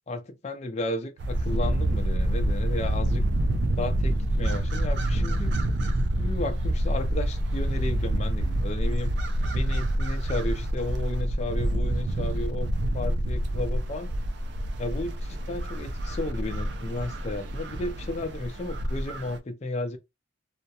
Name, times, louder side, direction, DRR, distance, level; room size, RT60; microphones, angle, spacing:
voice 1, 0.1-3.2 3.8-5.5 6.2-9.1 9.4-14.1 14.8-20.0, left 2 dB, 35° left, 0.3 m, -33 dB
sound 1, 1.2-19.4, right 1 dB, 60° right, 0.4 m, -27 dB
2.3 x 2.1 x 2.7 m
head